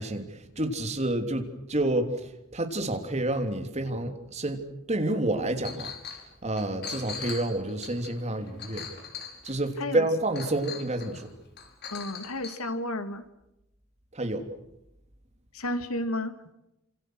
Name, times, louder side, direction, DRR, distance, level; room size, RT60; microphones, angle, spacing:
voice 1, 0.0-4.6 4.9-5.9 6.4-8.9 9.4-11.2 14.1-14.4, right 1 dB, 30° right, 6 dB, 3.2 m, -29 dB
Chink clink, 5.6-6.2 6.6-9.7 10.3-11.2 11.6-12.6, left 6 dB, 50° left, 5.3 m, -40 dB
voice 2, 11.9-13.3 15.5-16.4, left 1 dB, 80° left, 9 dB, 2.6 m, -32 dB
29.0 x 27.0 x 6.4 m, 0.87 s
head